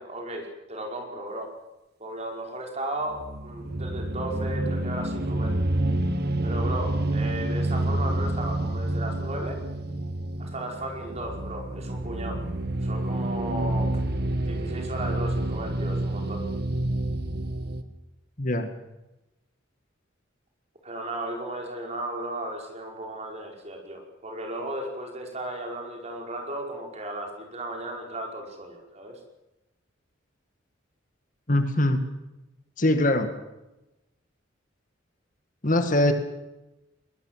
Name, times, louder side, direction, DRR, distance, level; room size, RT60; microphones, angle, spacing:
voice 1, 0.0-1.5 2.0-5.6 6.4-9.6 10.4-12.4 12.8-13.9 14.4-16.5 20.8-29.2, right 1 dB, 35° right, 2 dB, 5.3 m, -35 dB
sound 1, 3.1-17.8, right 1 dB, 55° right, 1.6 m, -28 dB
voice 2, 18.4-18.7 31.5-32.1 32.8-33.3 35.6-36.1, left 1 dB, 40° left, 7 dB, 2.0 m, -22 dB
22.5 x 20.0 x 7.6 m, 0.96 s
head